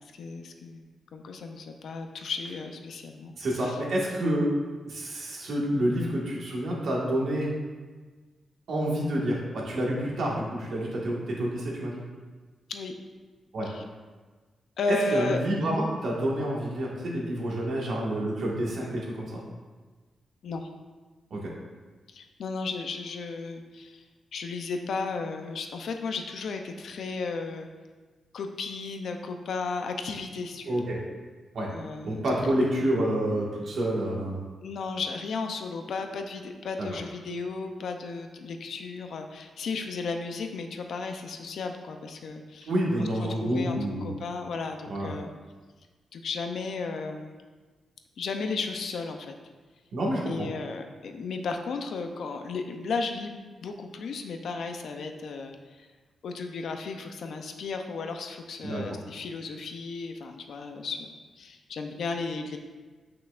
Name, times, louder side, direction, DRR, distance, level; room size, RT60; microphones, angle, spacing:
voice 1, 0.1-3.3 3.6-3.8 12.7-12.9 13.7-13.8 14.8-15.4 20.4-20.7 22.1-24.0 24.3-27.7 28.3-30.8 31.7-32.2 34.6-42.7 43.0-45.3 46.1-47.3 48.2-49.4 50.3-55.9 56.2-62.6, left 4 dB, 65° left, 5 dB, 0.6 m, -34 dB
voice 2, 3.4-4.5 4.9-7.5 8.7-12.0 13.5-13.7 14.9-19.4 21.3-21.5 30.7-31.0 31.5-31.7 32.0-34.4 36.8-36.9 42.6-44.1 44.9-45.1 49.9-50.5 58.6-58.8, right 1 dB, 65° right, -4 dB, 1.8 m, -28 dB
8.5 x 5.8 x 2.5 m, 1.4 s
wide cardioid pair, 170°, 0 cm